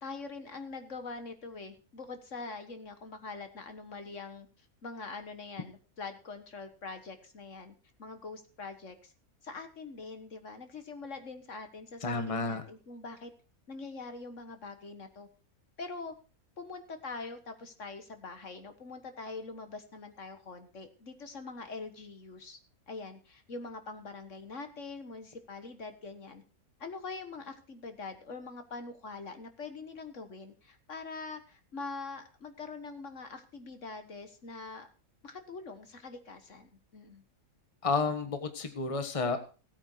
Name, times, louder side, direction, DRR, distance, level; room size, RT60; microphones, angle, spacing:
voice 1, 0.0-4.5 4.8-9.1 9.4-13.3 13.7-15.3 15.8-16.1 16.6-22.6 22.9-26.4 26.8-34.9 35.2-37.2, left 3 dB, 60° left, 8 dB, 1.8 m, -43 dB
voice 2, 12.0-12.6 37.8-39.4, left 4 dB, 25° left, 7 dB, 1.5 m, -31 dB
17.0 x 9.0 x 4.6 m, 0.35 s
omnidirectional pair, 1.5 m